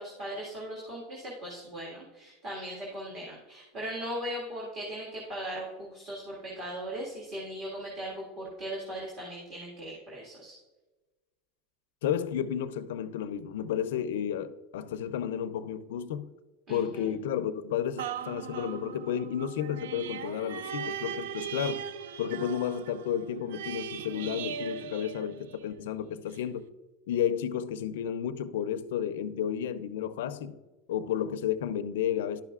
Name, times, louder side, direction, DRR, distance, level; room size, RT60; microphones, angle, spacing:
voice 1, 0.0-10.5 16.7-17.1, equal, 35° right, 1.9 m, -38 dB
voice 2, 12.0-16.3 16.7-21.9 22.2-26.7 27.1-30.5 30.9-32.4, left 9 dB, 90° left, 0.5 m, -32 dB
sound 1, 18.0-25.8 26.3-26.4, right 8 dB, 90° right, 0.3 m, -39 dB
11.5 x 5.6 x 2.4 m
supercardioid pair, 155°, 0 cm